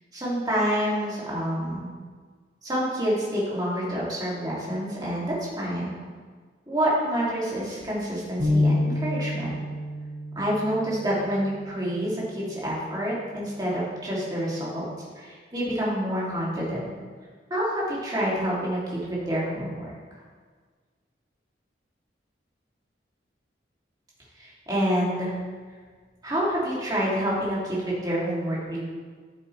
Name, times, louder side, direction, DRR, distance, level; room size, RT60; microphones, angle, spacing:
voice 1, 0.1-1.9 2.6-5.9 6.7-9.5 10.3-14.8 15.1-16.9 17.5-19.9 24.4-25.4 26.2-28.8, equal, 20° right, -7 dB, 2.6 m, -27 dB
sound 1, 8.4-11.9, left 2 dB, 90° right, 2.2 m, -28 dB
12.0 x 7.5 x 3.3 m, 1.6 s
head